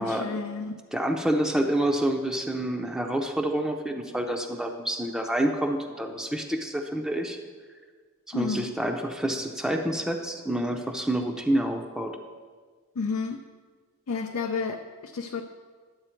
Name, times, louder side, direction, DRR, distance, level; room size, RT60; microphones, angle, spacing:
voice 1, 0.0-0.7 8.3-8.7 13.0-13.4 14.1-15.4, left 4 dB, 70° left, 3 dB, 0.5 m, -31 dB
voice 2, 0.9-7.4 8.3-12.1, right 1 dB, ahead, 2 dB, 0.6 m, -28 dB
11.0 x 7.8 x 4.4 m, 1.5 s
head